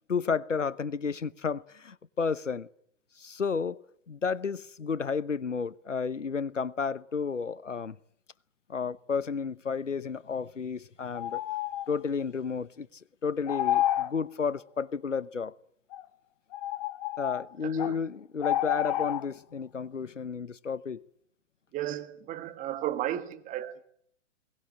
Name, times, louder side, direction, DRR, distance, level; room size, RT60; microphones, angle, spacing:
voice 1, 0.1-2.7 3.2-3.8 4.1-8.0 8.7-11.4 11.9-12.9 13.2-15.5 17.2-21.0, left 5 dB, 85° left, 1.0 m, -32 dB
sound 1, 3.7-3.8 11.1-11.9 13.4-14.2 15.9-16.0 16.5-18.0 18.4-19.3, left 13 dB, 35° left, 0.9 m, -29 dB
voice 2, 17.6-17.9 21.7-23.8, right 12 dB, 20° right, 1.6 m, -34 dB
22.5 x 19.0 x 8.8 m
figure-of-eight pair, 120°, 36 cm